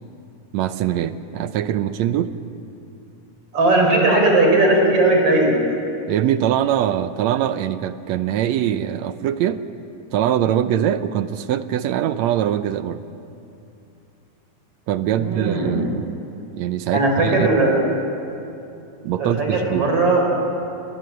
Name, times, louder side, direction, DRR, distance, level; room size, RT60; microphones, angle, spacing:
voice 1, 0.5-2.3 6.1-9.6 10.1-13.0 14.9-16.2 16.5-17.5 19.0-19.9, right 10 dB, 70° right, 11 dB, 1.8 m, -22 dB
voice 2, 3.5-5.6 15.2-15.9 16.9-17.8 19.2-20.2, right 2 dB, 45° right, 1 dB, 5.4 m, -17 dB
29.5 x 20.5 x 7.9 m, 2.7 s
omnidirectional pair, 3.6 m